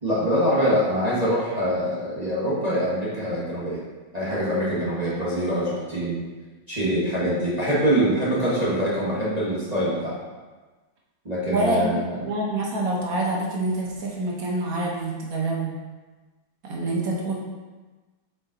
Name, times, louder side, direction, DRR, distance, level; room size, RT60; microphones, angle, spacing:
voice 1, 0.0-3.8 4.1-6.2 6.7-10.2 11.2-12.3, equal, 25° right, -9 dB, 1.2 m, -24 dB
voice 2, 11.5-15.7 16.6-17.3, right 2 dB, 55° right, -3 dB, 1.3 m, -26 dB
6.8 x 3.9 x 3.8 m, 1.3 s
omnidirectional pair, 2.2 m